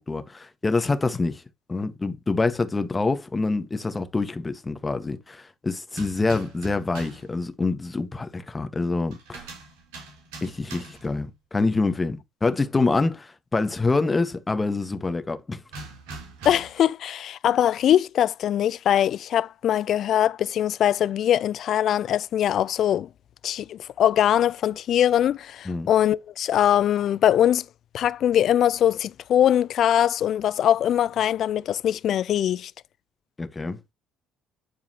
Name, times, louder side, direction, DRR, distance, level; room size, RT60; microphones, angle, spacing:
voice 1, 0.1-1.4 1.7-9.5 10.4-15.6 25.6-25.9 33.4-33.8, left 3 dB, 20° left, 1.7 m, -26 dB
sound 1, 5.9-7.3 9.1-11.2 15.7-16.9, right 3 dB, 65° right, 3.0 m, -41 dB
voice 2, 16.4-23.1 23.4-27.6 27.9-32.7, left 10 dB, 50° left, 0.4 m, -22 dB
11.0 x 4.7 x 3.0 m
figure-of-eight pair, 50°, 0 cm